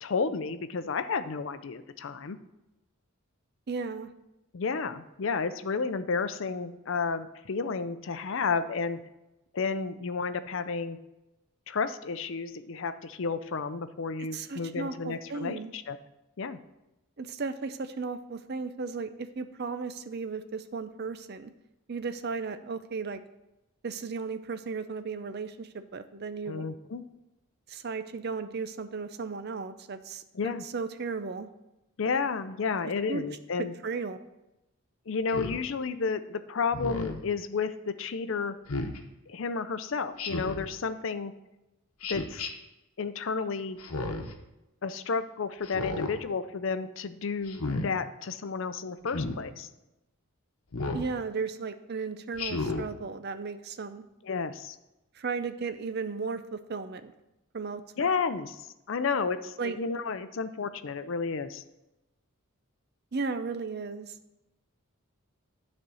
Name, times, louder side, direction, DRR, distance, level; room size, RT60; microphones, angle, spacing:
voice 1, 0.0-2.4 4.5-9.0 9.5-11.0 11.7-16.0 16.4-16.6 26.5-27.0 30.3-30.6 32.0-33.7 35.1-38.6 39.3-41.3 42.1-42.4 43.0-43.8 44.8-49.7 54.2-54.8 58.0-61.6, left 5 dB, 60° left, 12 dB, 0.5 m, -32 dB
voice 2, 3.7-4.1 14.2-15.7 17.2-21.5 21.9-23.2 23.8-26.7 27.7-31.5 33.1-33.2 33.6-34.2 50.9-54.0 55.1-57.1 57.5-57.8 59.6-59.8 63.1-64.2, right 4 dB, 45° right, 10 dB, 0.5 m, -35 dB
Speech synthesizer, 35.3-35.6 36.7-37.2 38.7-39.0 40.2-40.7 42.0-42.5 43.8-44.3 45.6-46.1 47.5-47.9 49.1-49.4 50.7-51.1 52.4-52.9, left 3 dB, 80° left, 1.0 m, -33 dB
9.6 x 4.3 x 6.2 m, 0.95 s
head